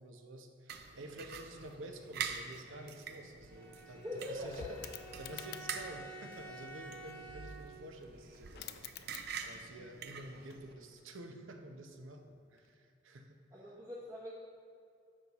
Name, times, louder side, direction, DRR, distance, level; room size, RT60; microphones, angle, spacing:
voice 1, 0.0-4.0 4.3-4.8 5.2-13.4, right 1 dB, 80° right, 4 dB, 0.8 m, -50 dB
sound 1, 0.7-10.7, right 6 dB, 50° right, 0.5 m, -46 dB
sound 2, 3.1-3.2 3.4-6.0 8.0-8.1 8.3-9.7 10.0-11.1 12.5-12.7, left 9 dB, 50° left, 0.4 m, -51 dB
Bowed string instrument, 3.4-7.9, right 1 dB, 5° left, 1.1 m, -51 dB
voice 2, 3.9-4.9 13.5-14.3, left 1 dB, 20° right, -5 dB, 0.9 m, -43 dB
9.8 x 7.1 x 3.0 m, 2.4 s
head